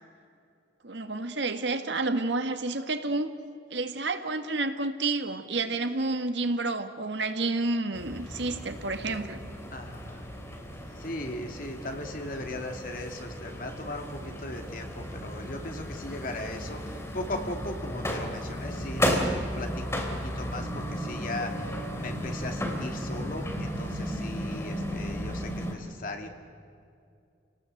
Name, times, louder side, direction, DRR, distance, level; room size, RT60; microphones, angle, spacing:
voice 1, 0.8-3.3 3.7-9.4, right 3 dB, 85° right, 8 dB, 1.7 m, -30 dB
sound 1, 7.9-25.7, equal, 15° left, 2.7 m, -34 dB
voice 2, 9.7-10.3 11.0-26.3, left 1 dB, 50° left, 4 dB, 2.5 m, -38 dB
29.0 x 18.5 x 7.9 m, 2.5 s
head